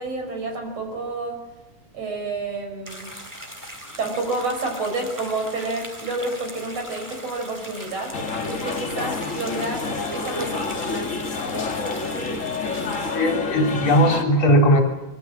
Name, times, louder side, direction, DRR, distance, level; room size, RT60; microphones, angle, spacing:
voice 1, 0.0-1.4 1.9-3.2 4.0-8.1 8.6-10.6, right 3 dB, 50° right, 4 dB, 6.1 m, -29 dB
sound 1, 2.9-13.2, equal, 5° right, 3.5 m, -40 dB
sound 2, 8.1-14.2, left 4 dB, 30° left, 1.5 m, -28 dB
voice 2, 13.1-14.8, equal, 50° left, 3 dB, 4.2 m, -18 dB
25.5 x 23.0 x 7.4 m, 1.1 s
omnidirectional pair, 3.8 m